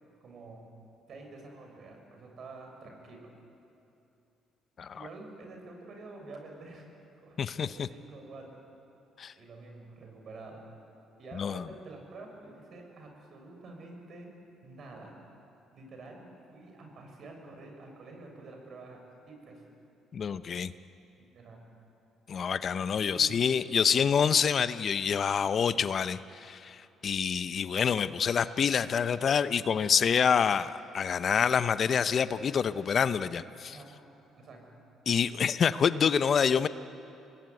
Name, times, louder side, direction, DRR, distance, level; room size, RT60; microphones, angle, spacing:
voice 1, 0.2-0.7 1.1-3.3 4.9-6.8 7.2-8.4 9.4-10.6 11.2-14.3 14.6-15.1 15.7-19.0 19.3-19.6 21.2-21.6 23.1-23.4 33.6-33.9 34.4-34.7, right 3 dB, 60° right, 2 dB, 6.6 m, -48 dB
voice 2, 7.4-7.9 9.2-9.3 11.3-11.7 20.1-20.7 22.3-33.8 35.1-36.7, left 7 dB, 50° left, 14 dB, 0.8 m, -27 dB
26.0 x 19.0 x 9.7 m, 2.8 s
supercardioid pair, 65°, 0 cm